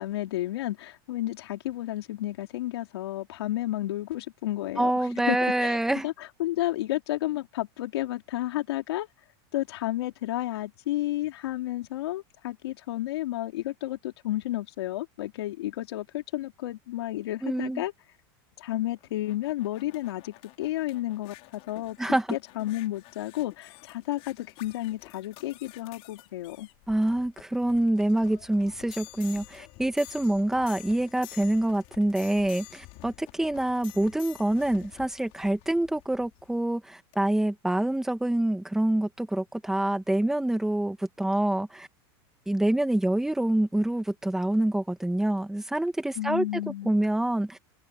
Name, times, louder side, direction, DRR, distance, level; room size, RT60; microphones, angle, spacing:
voice 1, 0.0-4.9 5.3-9.1 9.5-17.9 18.6-22.0 22.3-26.7 46.2-46.9, left 15 dB, 85° left, 3.8 m, -32 dB
voice 2, 4.8-6.1 17.4-17.8 22.0-22.3 26.9-41.9 42.5-47.6, right 1 dB, 5° right, 1.9 m, -26 dB
sound 1, 18.9-36.6 37.1-37.2, left 24 dB, 50° left, 6.1 m, -50 dB
open air
supercardioid pair, 150°, 13 cm